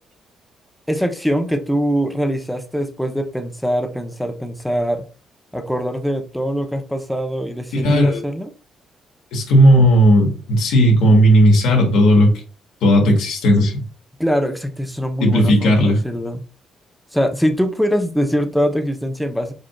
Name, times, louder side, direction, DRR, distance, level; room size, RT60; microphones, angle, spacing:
voice 1, 0.9-5.1 5.5-8.5 14.2-16.4 17.1-19.5, equal, ahead, 0.7 m, -22 dB
voice 2, 7.7-8.2 9.3-12.3 12.8-13.8 15.2-16.0, equal, 90° left, 1.8 m, -14 dB
5.0 x 4.4 x 2.3 m
cardioid pair, 90°, 0 cm